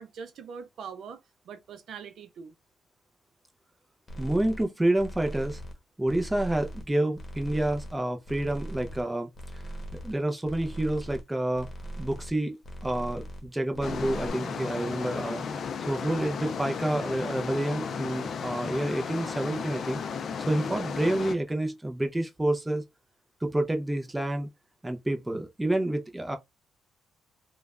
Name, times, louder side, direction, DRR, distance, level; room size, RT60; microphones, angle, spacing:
voice 1, 0.0-2.5, right 6 dB, 70° right, 0.5 m, -43 dB
sound 1, 4.1-4.7 5.0-5.8 6.1-6.9 7.2-8.0 8.2-9.0 9.3-10.2 10.4-11.2 11.5-12.4 12.6-13.5 13.7-14.3, right 1 dB, 35° left, 1.0 m, -40 dB
voice 2, 4.2-5.6 6.0-9.3 10.0-11.7 12.0-15.4 15.9-20.0 20.4-22.8 23.4-24.5 24.8-26.4, right 1 dB, 10° right, 0.5 m, -28 dB
sound 2, 13.8-21.3, left 6 dB, 55° left, 0.4 m, -34 dB
3.1 x 2.2 x 2.4 m
cardioid pair, 90°, 0 cm